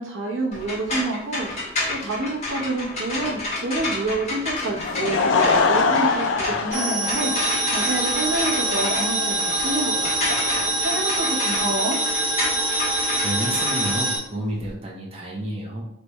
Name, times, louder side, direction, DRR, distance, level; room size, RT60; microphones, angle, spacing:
voice 1, 0.0-12.0, right 2 dB, 75° right, -1 dB, 0.9 m, -28 dB
sound 1, 0.5-14.7, left 2 dB, 35° left, 1.6 m, -31 dB
Laughter / Crowd, 4.7-11.6, left 4 dB, 70° left, 0.4 m, -25 dB
sound 2, 6.7-14.2, right 1 dB, 5° right, 1.2 m, -24 dB
voice 2, 13.2-15.8, right 1 dB, 30° right, -3 dB, 1.0 m, -30 dB
3.3 x 3.3 x 4.2 m, 0.78 s
head